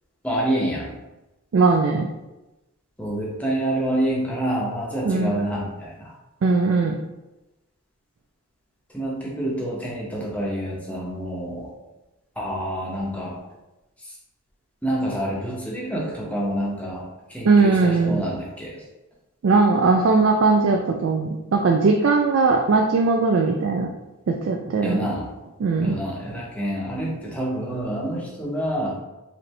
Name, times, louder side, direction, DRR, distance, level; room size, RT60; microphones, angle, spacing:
voice 1, 0.2-0.9 3.0-6.1 8.9-11.7 12.4-13.4 14.8-18.8 24.8-25.3 25.8-29.0, right 1 dB, 5° left, -4 dB, 0.7 m, -27 dB
voice 2, 1.5-2.1 5.1-5.3 6.4-7.0 17.4-18.3 19.4-23.9 24.3-25.1 25.6-26.0, right 4 dB, 60° right, 2 dB, 0.3 m, -19 dB
4.3 x 2.6 x 3.1 m, 1.0 s
head